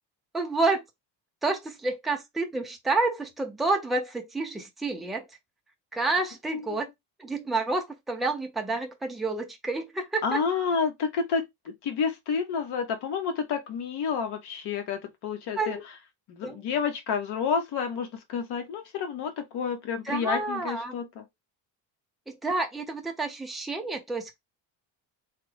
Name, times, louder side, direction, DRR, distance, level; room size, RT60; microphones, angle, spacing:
voice 1, 0.3-0.8 1.4-5.3 5.9-6.9 7.2-10.4 15.6-15.8 16.4-16.6 20.1-20.9 22.3-24.4, right 3 dB, ahead, 0.3 m, -29 dB
voice 2, 10.2-15.8 16.3-21.2, left 6 dB, 65° left, 1.1 m, -30 dB
3.4 x 2.1 x 3.1 m
cardioid pair, 160°, 43 cm